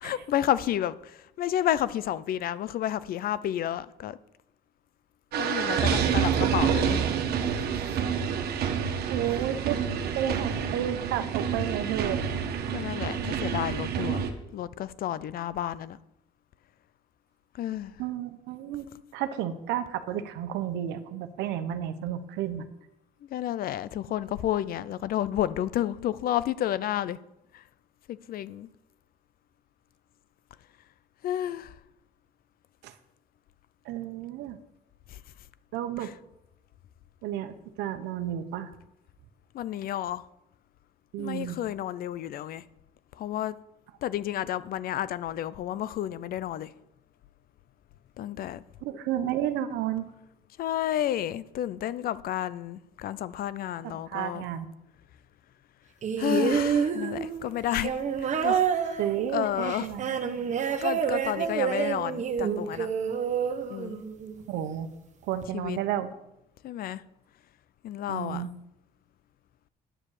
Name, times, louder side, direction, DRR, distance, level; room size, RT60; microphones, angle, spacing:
voice 1, 0.0-4.2 5.4-7.1 12.7-14.2 14.5-16.0 17.5-18.0 23.2-27.2 27.5-27.6 28.1-28.7 31.2-31.8 35.1-35.2 36.0-36.1 39.5-40.3 41.2-42.6 43.1-43.6 44.0-46.7 48.2-48.6 50.6-54.4 56.2-59.0 59.3-59.9 60.8-62.9 63.7-64.0 65.5-65.8 66.6-67.0 67.8-68.5, left 11 dB, 60° left, 0.6 m, -31 dB
sound 1, 5.3-14.3, right 7 dB, 70° right, 1.4 m, -28 dB
voice 2, 9.1-9.8 10.1-12.2 18.0-18.9 19.1-22.7 32.8-32.9 33.8-34.6 35.7-36.1 37.2-38.7 41.1-41.6 48.8-50.1 53.8-54.7 59.0-60.2 64.5-64.9 65.2-66.1 68.1-68.5, right 11 dB, 90° right, 1.0 m, -32 dB
sound 2, 56.0-64.4 65.4-65.5, right 7 dB, 45° right, 1.2 m, -28 dB
10.0 x 7.4 x 6.6 m
cardioid pair, 110°, 17 cm